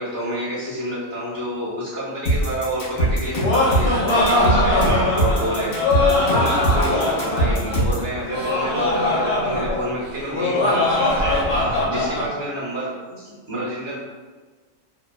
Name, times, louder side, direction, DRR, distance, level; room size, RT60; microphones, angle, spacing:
voice 1, 0.0-14.0, right 1 dB, 25° right, -11 dB, 0.7 m, -29 dB
sound 1, 2.3-8.1, right 1 dB, 80° left, 1.2 m, -21 dB
Laughter, 3.1-12.3, left 2 dB, 60° left, 0.8 m, -21 dB
2.7 x 2.1 x 2.3 m, 1.4 s
omnidirectional pair, 1.4 m